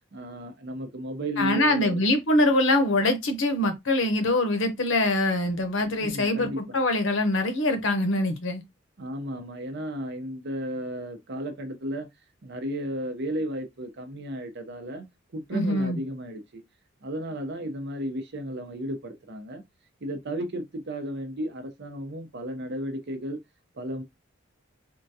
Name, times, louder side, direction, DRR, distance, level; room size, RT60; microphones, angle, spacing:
voice 1, 0.1-2.0 6.0-6.6 9.0-12.1 12.4-15.1 15.3-16.6 17.0-19.6 20.0-23.4 23.7-24.0, right 1 dB, 60° right, 0.8 m, -34 dB
voice 2, 1.4-8.6 15.5-16.0, left 1 dB, 70° left, 0.8 m, -24 dB
3.7 x 2.2 x 2.7 m
head